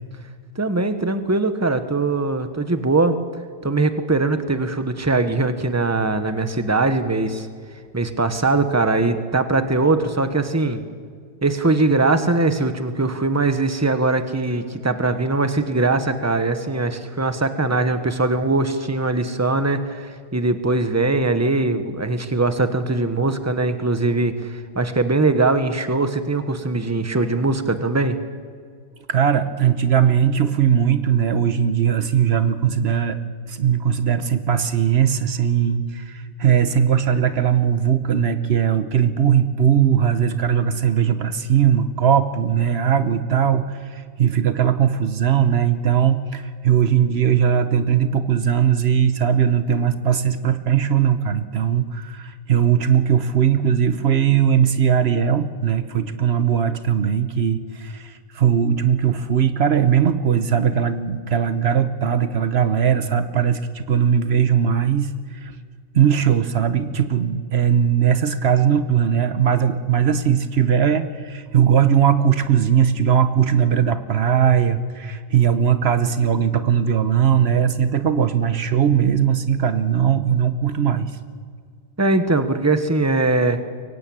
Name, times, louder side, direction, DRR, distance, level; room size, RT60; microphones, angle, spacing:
voice 1, 0.5-3.2 3.6-7.5 7.9-10.8 11.4-28.2 82.0-83.6, right 3 dB, 15° right, 9 dB, 1.3 m, -21 dB
voice 2, 29.1-33.2 33.5-65.6 65.9-81.1, right 8 dB, 75° right, 11 dB, 1.2 m, -19 dB
23.5 x 17.5 x 8.8 m, 2.1 s
omnidirectional pair, 1.1 m